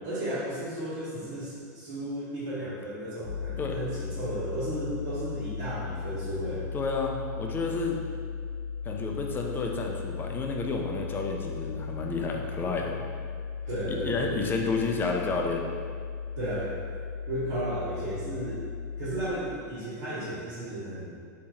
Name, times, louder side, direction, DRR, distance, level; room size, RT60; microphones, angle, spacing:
voice 1, 0.0-6.7 13.7-14.4 16.4-16.7 17.3-18.6 19.0-21.2, right 1 dB, 70° right, -13 dB, 1.1 m, -34 dB
sound 1, 3.2-19.3, left 5 dB, 75° left, 0.7 m, -36 dB
voice 2, 6.7-8.0 8.9-13.0 14.0-15.6, left 4 dB, 20° left, 1 dB, 0.4 m, -30 dB
3.5 x 2.8 x 2.8 m, 2.2 s
supercardioid pair, 125°, 10 cm